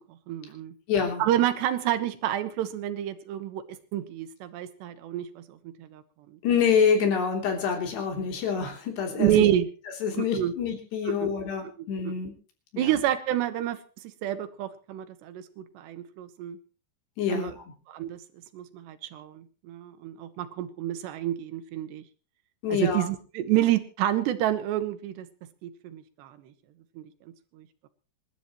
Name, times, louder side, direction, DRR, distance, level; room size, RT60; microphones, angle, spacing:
voice 1, 0.3-0.7 1.2-3.6 3.9-6.0 9.2-9.7 10.2-10.5 11.1-11.3 12.0-12.1 12.8-13.8 14.2-16.6 17.3-17.5 17.9-18.2 18.5-22.0 22.7-25.3 25.6-26.4 27.0-27.1 27.6-27.7, right 12 dB, 80° right, 11 dB, 3.4 m, -28 dB
voice 2, 0.9-1.2 6.4-9.5 10.0-12.3 12.7-12.9 17.2-17.6 22.6-23.1, left 6 dB, 75° left, 3 dB, 5.4 m, -26 dB
27.5 x 12.5 x 3.1 m, 0.37 s
omnidirectional pair, 4.8 m